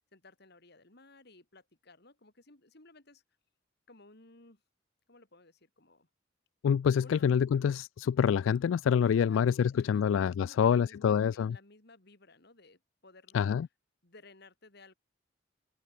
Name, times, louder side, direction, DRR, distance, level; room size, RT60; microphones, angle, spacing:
voice 1, 0.1-3.2 3.9-4.6 5.1-6.1 7.0-7.3 9.0-13.4 14.0-14.9, left 3 dB, 60° left, 3.7 m, -57 dB
voice 2, 6.6-11.6 13.3-13.7, left 7 dB, 90° left, 0.3 m, -26 dB
head